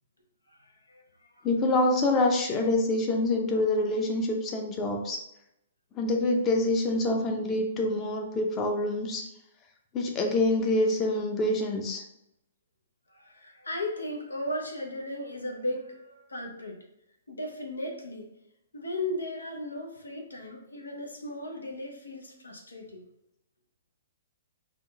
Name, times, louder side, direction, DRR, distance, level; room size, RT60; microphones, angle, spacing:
voice 1, 0.5-1.0 1.3-1.4 13.1-16.8 17.3-18.3 18.7-23.0, left 1 dB, 85° left, 1 dB, 0.8 m, -36 dB
voice 2, 1.4-5.2 5.9-9.3 9.9-12.0, left 2 dB, 25° left, 2 dB, 0.7 m, -26 dB
3.7 x 2.5 x 3.4 m, 0.83 s
figure-of-eight pair, 120°, 0 cm